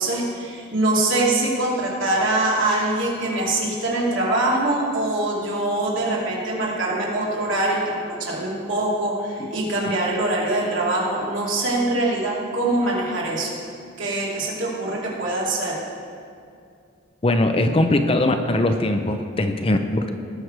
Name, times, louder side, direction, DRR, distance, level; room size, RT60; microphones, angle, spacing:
voice 1, 0.0-13.5 14.0-15.8, right 2 dB, 65° right, -4 dB, 2.7 m, -23 dB
voice 2, 17.2-20.1, left 1 dB, 25° left, 7 dB, 0.5 m, -20 dB
19.0 x 6.5 x 4.6 m, 2.4 s
head